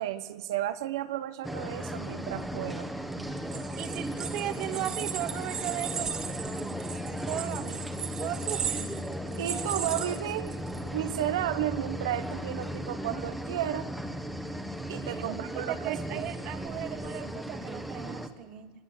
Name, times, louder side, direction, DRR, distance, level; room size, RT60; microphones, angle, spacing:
voice 1, 0.0-2.9 9.4-10.5 10.9-13.9 14.9-16.2, right 12 dB, 85° right, 10 dB, 1.1 m, -33 dB
sound 1, 1.4-18.3, equal, ahead, 1.5 m, -36 dB
sound 2, 3.4-10.8, right 8 dB, 25° right, 1.9 m, -37 dB
voice 2, 3.8-6.1 7.3-7.9 8.2-9.0 15.1-18.7, right 12 dB, 40° right, 11 dB, 1.4 m, -37 dB
24.5 x 21.0 x 8.2 m, 1.3 s
supercardioid pair, 150°, 2 cm